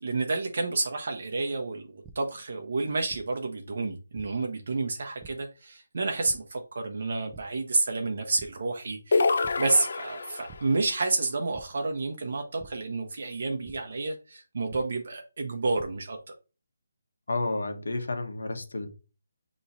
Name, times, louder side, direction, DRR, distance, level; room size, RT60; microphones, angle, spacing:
voice 1, 0.0-9.3 9.6-16.2, right 3 dB, 55° right, 0.7 m, -30 dB
sound 1, 2.0-2.1 3.1-3.2 4.2-4.3 5.2-5.3 6.3-6.4 7.3-7.4 7.9-8.0 8.4-8.5 9.4-9.5 10.5-10.6 11.5-11.6 12.6-12.7 13.6-13.7 14.7-14.8 15.5-15.8, right 6 dB, 10° right, 0.4 m, -47 dB
sound 2, 9.1-10.7, left 3 dB, 55° left, 0.4 m, -26 dB
voice 2, 17.3-18.9, left 2 dB, 85° left, 1.0 m, -31 dB
5.7 x 3.0 x 2.6 m
hypercardioid pair, 170°, 0 cm